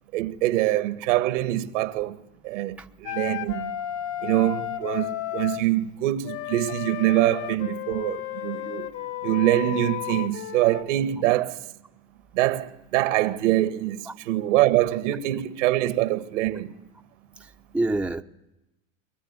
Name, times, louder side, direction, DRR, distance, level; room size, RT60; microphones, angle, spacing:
voice 1, 0.1-2.2 2.4-3.7 4.2-8.9 9.2-11.6 12.3-16.7, right 15 dB, 70° right, 1.7 m, -24 dB
Wind instrument woodwind instrument, 3.0-5.7 6.2-10.8, left 13 dB, 50° left, 2.0 m, -33 dB
voice 2, 17.4-18.2, right 2 dB, 5° right, 0.9 m, -27 dB
22.5 x 20.0 x 9.7 m
hypercardioid pair, 110°, 37 cm